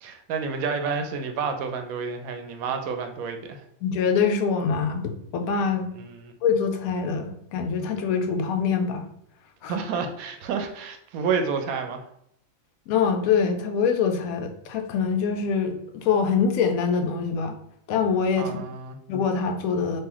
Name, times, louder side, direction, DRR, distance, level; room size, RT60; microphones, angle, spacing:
voice 1, 0.0-3.6 5.9-6.3 9.7-12.0 18.4-19.0, right 5 dB, 90° right, 6 dB, 1.0 m, -29 dB
voice 2, 3.8-5.9 6.4-9.0 9.6-9.7 12.9-17.5 17.9-18.6 19.1-20.0, left 6 dB, 90° left, 6 dB, 1.0 m, -24 dB
2.9 x 2.8 x 3.7 m, 0.73 s
omnidirectional pair, 1.4 m